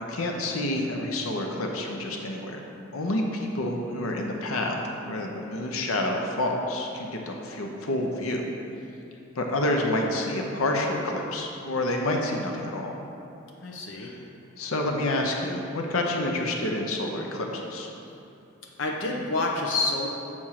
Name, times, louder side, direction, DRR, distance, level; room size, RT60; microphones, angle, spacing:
voice 1, 0.1-2.6 2.9-4.8 5.0-8.4 9.3-12.9 14.6-17.9, left 1 dB, 85° left, 1 dB, 0.9 m, -28 dB
voice 2, 13.6-14.1 18.8-20.1, left 2 dB, 60° left, -1 dB, 0.8 m, -28 dB
7.3 x 4.4 x 6.5 m, 2.9 s
head